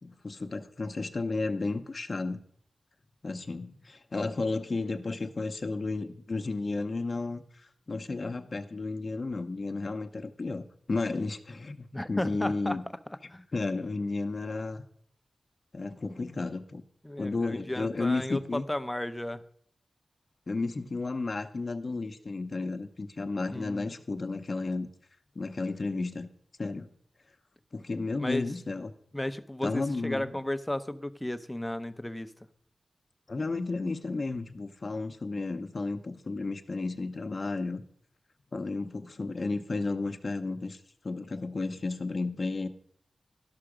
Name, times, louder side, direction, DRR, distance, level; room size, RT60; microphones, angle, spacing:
voice 1, 0.0-2.4 3.2-7.4 7.9-12.8 13.5-14.8 15.7-16.8 17.2-18.6 20.5-24.9 25.3-26.3 26.6-26.9 27.7-28.9 29.6-30.3 33.3-37.8 38.5-40.8 41.0-42.7, left 3 dB, 50° left, 8 dB, 0.8 m, -33 dB
voice 2, 11.9-12.8 13.1-13.5 17.0-19.4 23.5-23.9 28.2-28.5 29.1-32.3, left 1 dB, 10° left, 12 dB, 0.6 m, -34 dB
12.5 x 5.7 x 5.0 m, 0.66 s
wide cardioid pair, 70°, 0 cm